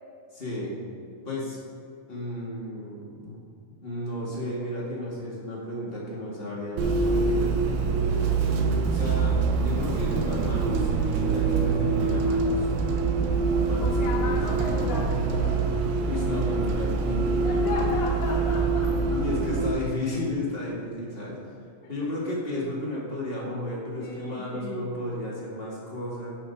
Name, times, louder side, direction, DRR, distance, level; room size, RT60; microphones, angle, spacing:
voice 1, 0.3-0.7 1.2-1.6 2.1-3.4 3.8-7.4 8.9-9.3 9.6-12.7 13.6-14.4 16.0-17.5 19.1-21.4 21.9-26.3, left 1 dB, 25° left, -5 dB, 1.2 m, -33 dB
Bus, 6.8-19.7, right 4 dB, 80° right, 2.6 m, -25 dB
voice 2, 13.8-15.6 17.4-19.2 21.8-21.9 24.0-25.0, left 3 dB, 65° left, -4 dB, 1.7 m, -35 dB
11.0 x 5.7 x 5.3 m, 2.4 s
omnidirectional pair, 4.4 m